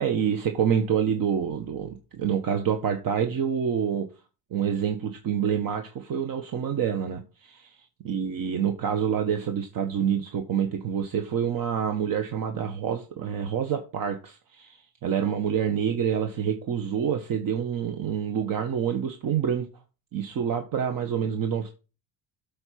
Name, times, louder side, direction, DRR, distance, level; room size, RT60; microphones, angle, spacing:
voice 1, 0.0-4.1 4.5-7.7 8.0-19.7 20.1-21.7, right 8 dB, 50° right, 1.5 m, -27 dB
8.0 x 5.3 x 5.9 m
cardioid pair, 130°, 45 cm